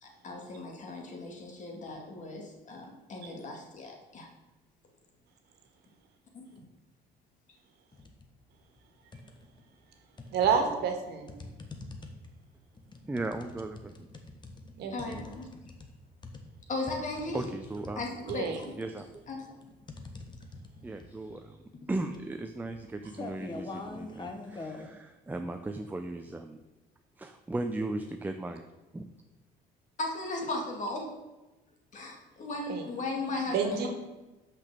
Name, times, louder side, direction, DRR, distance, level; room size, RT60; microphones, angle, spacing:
voice 1, 0.0-4.3 6.4-6.5 14.9-15.5 16.7-17.5 18.0-18.7 19.3-19.5 30.0-31.1 31.9-33.9, left 2 dB, 45° left, 1 dB, 2.1 m, -36 dB
sound 1, 7.9-8.3 8.7-9.6 10.2-24.9, left 3 dB, 25° left, 1.1 m, -45 dB
voice 2, 10.3-11.3 14.8-15.1 18.3-18.6 32.7-32.8 33.5-33.9, right 6 dB, 75° right, 5 dB, 1.6 m, -29 dB
voice 3, 13.1-13.9 17.3-18.1 18.8-19.2 20.8-21.6 21.9-26.6 27.2-28.6 28.9-29.1, right 2 dB, 10° right, 6 dB, 0.5 m, -36 dB
6.0 x 6.0 x 6.7 m, 1.1 s
cardioid pair, 110°, 17 cm